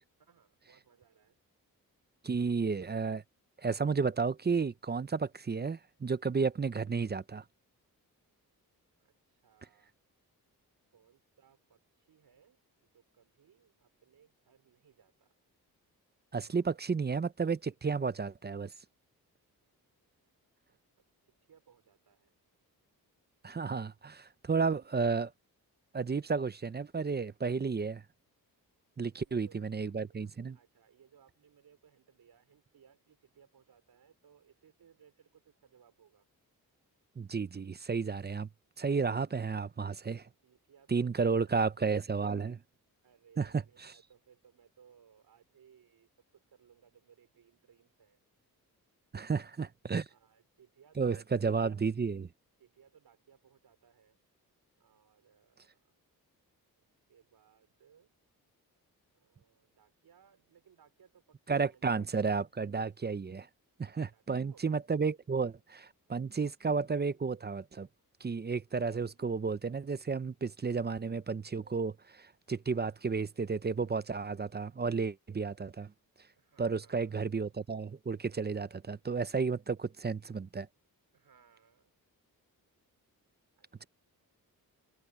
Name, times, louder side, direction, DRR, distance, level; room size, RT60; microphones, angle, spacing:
voice 1, 0.2-1.4 9.0-9.9 10.9-12.6 12.9-15.3 16.5-16.8 20.7-22.3 29.0-36.3 40.4-41.7 43.0-48.2 49.1-49.4 49.7-49.8 50.1-51.8 52.6-54.2 54.8-55.9 56.8-58.1 59.1-62.1 64.0-64.7 76.4-77.1 81.1-81.9 83.6-83.9, right 8 dB, 80° right, 4.6 m, -64 dB
voice 2, 2.2-3.2 3.6-7.4 16.3-18.7 23.4-25.3 25.9-28.0 29.0-30.6 37.2-38.5 38.8-40.3 40.9-42.6 43.4-43.9 49.1-50.1 51.0-52.3 61.5-63.5 63.8-67.9 68.2-75.9 76.6-80.7, right 5 dB, 25° right, 0.7 m, -32 dB
wide cardioid pair, 100°, 36 cm